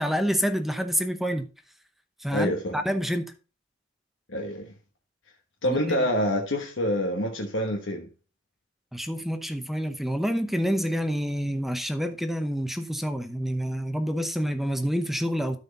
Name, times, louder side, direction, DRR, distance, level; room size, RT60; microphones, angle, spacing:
voice 1, 0.0-1.5 2.2-3.3 5.6-6.1 8.9-15.6, equal, ahead, 0.8 m, -28 dB
voice 2, 2.3-2.8 4.3-4.7 5.6-8.1, equal, 70° left, 1.2 m, -27 dB
13.0 x 4.3 x 4.0 m
head